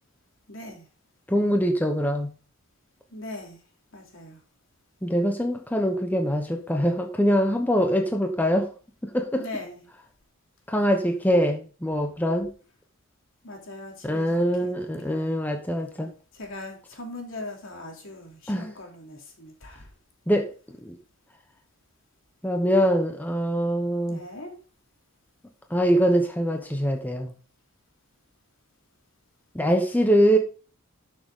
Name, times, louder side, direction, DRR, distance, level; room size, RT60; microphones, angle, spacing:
voice 1, 0.5-0.9 3.1-3.6 3.9-4.4 9.3-9.8 13.4-15.3 16.3-19.9 24.1-24.5, left 2 dB, 65° left, 3.1 m, -40 dB
voice 2, 1.3-2.3 5.0-8.7 9.0-9.4 10.7-12.5 14.0-16.1 18.5-18.7 20.3-20.5 20.8-21.0 22.4-24.2 25.7-27.3 29.5-30.4, equal, 10° left, 1.0 m, -23 dB
12.5 x 6.5 x 3.8 m
head